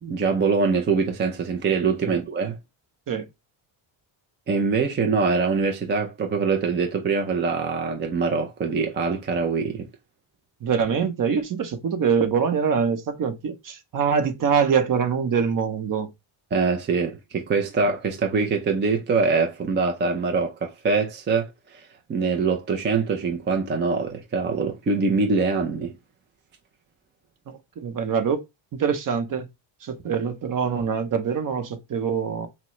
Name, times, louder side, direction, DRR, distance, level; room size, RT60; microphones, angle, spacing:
voice 1, 0.0-2.6 4.5-9.9 16.5-26.0, right 4 dB, 25° right, 0.3 m, -24 dB
voice 2, 10.6-16.1 27.5-28.4 28.7-29.5 29.8-32.5, right 6 dB, 40° right, 0.8 m, -24 dB
5.9 x 2.1 x 3.0 m
cardioid pair, 175°, 49 cm